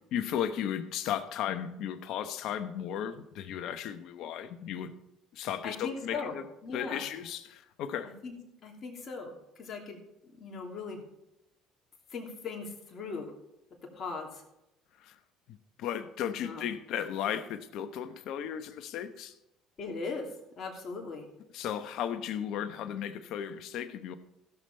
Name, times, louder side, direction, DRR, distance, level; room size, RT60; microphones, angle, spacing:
voice 1, 0.1-4.9 5.3-6.4 6.7-8.1 15.0-15.2 15.5-19.3 21.5-24.2, left 9 dB, 65° left, 11 dB, 0.9 m, -35 dB
voice 2, 5.6-6.4 6.6-7.0 8.2-8.3 8.6-11.0 12.1-13.3 13.9-14.4 16.4-16.7 19.8-20.3 20.6-21.2, left 4 dB, 45° left, 1 dB, 2.9 m, -39 dB
16.0 x 6.9 x 4.4 m, 0.88 s
hypercardioid pair, 65°, 0 cm